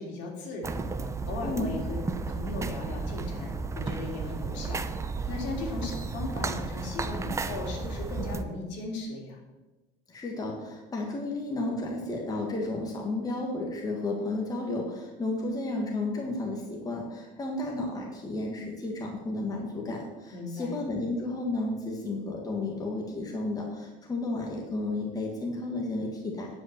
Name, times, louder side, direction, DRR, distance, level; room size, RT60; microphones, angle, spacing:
voice 1, 0.0-2.0 2.3-9.4 20.3-20.8, left 2 dB, 65° left, 0 dB, 3.1 m, -37 dB
sound 1, 0.6-8.4, right 4 dB, 15° right, 0.5 m, -33 dB
voice 2, 10.1-26.5, left 2 dB, 20° left, -1 dB, 1.6 m, -32 dB
10.0 x 5.3 x 7.5 m, 1.1 s
cardioid pair, 145°, 19 cm